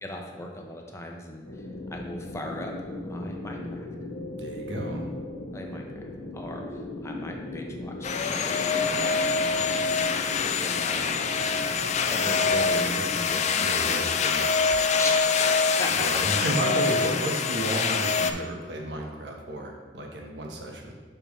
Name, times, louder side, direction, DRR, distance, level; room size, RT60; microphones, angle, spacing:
voice 1, 0.0-2.7 3.0-3.9 5.5-9.8 10.4-11.1 12.1-13.7 15.0-15.4 15.8-16.0, left 1 dB, 15° left, 2 dB, 0.7 m, -38 dB
sound 1, 1.4-13.2, left 2 dB, 75° left, 1.0 m, -38 dB
voice 2, 4.4-5.1 13.5-14.5 15.9-20.9, right 1 dB, 70° right, 1 dB, 1.1 m, -32 dB
sound 2, 8.0-18.3, left 5 dB, 40° left, 0.3 m, -25 dB
6.9 x 5.9 x 3.1 m, 1.4 s
head